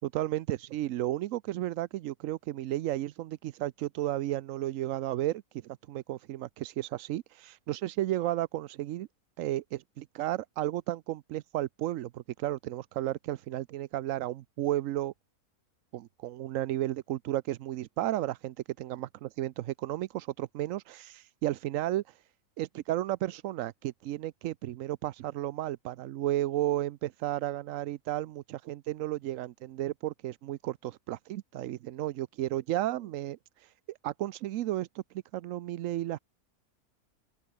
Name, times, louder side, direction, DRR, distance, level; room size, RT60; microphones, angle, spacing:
voice 1, 0.0-9.1 9.4-15.1 15.9-22.2 22.6-35.0 35.3-36.2, right 14 dB, 70° right, 0.9 m, -33 dB
open air
omnidirectional pair, 1.6 m